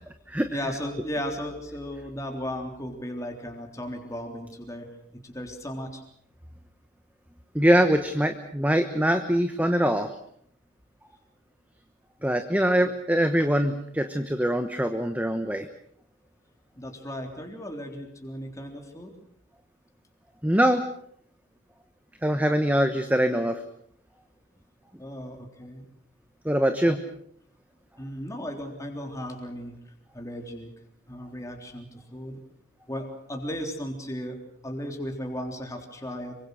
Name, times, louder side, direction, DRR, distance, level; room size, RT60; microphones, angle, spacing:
voice 1, 0.5-4.9 5.1-6.0 12.2-12.4 12.8-12.9 16.8-19.1 25.0-25.9 26.9-27.0 28.0-30.7 31.1-32.4 32.9-34.4 34.6-36.4, equal, 15° left, 2 dB, 3.6 m, -36 dB
voice 2, 7.5-10.1 12.2-15.7 20.4-20.8 22.2-23.6 26.4-27.0, equal, 5° right, 7 dB, 1.1 m, -23 dB
25.5 x 24.0 x 6.5 m, 0.66 s
head